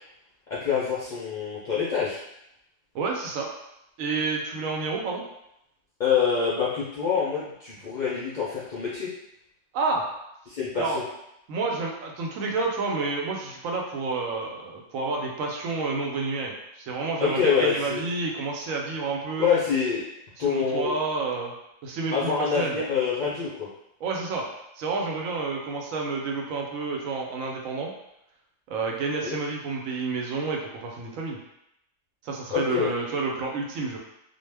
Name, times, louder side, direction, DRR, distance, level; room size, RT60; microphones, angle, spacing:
voice 1, 0.5-2.2 6.0-9.1 10.5-11.0 17.2-18.0 19.4-20.1 20.4-20.9 22.1-23.7 29.2-29.4 32.5-32.9, left 6 dB, 55° left, -8 dB, 0.5 m, -26 dB
voice 2, 2.9-3.5 4.0-5.2 9.7-10.0 10.7-11.0 11.5-19.5 20.4-21.5 21.8-22.8 24.0-24.5 24.8-27.9 28.7-31.4 32.2-34.0, right 3 dB, 85° right, 0 dB, 1.0 m, -29 dB
2.4 x 2.0 x 3.2 m, 0.83 s
omnidirectional pair, 1.3 m